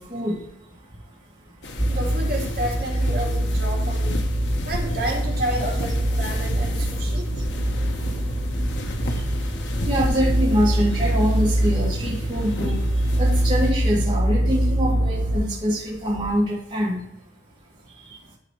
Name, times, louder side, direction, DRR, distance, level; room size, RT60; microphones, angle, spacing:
sound 1, 1.6-13.7, left 1 dB, 85° left, 1.0 m, -34 dB
sound 2, 1.8-15.4, right 1 dB, 30° left, 2.3 m, -24 dB
voice 1, 1.9-4.2 4.6-7.3, right 1 dB, 55° right, -2 dB, 2.5 m, -30 dB
voice 2, 9.8-12.8 13.2-17.0, equal, 25° right, -6 dB, 2.0 m, -24 dB
12.0 x 4.1 x 3.2 m, 0.79 s
head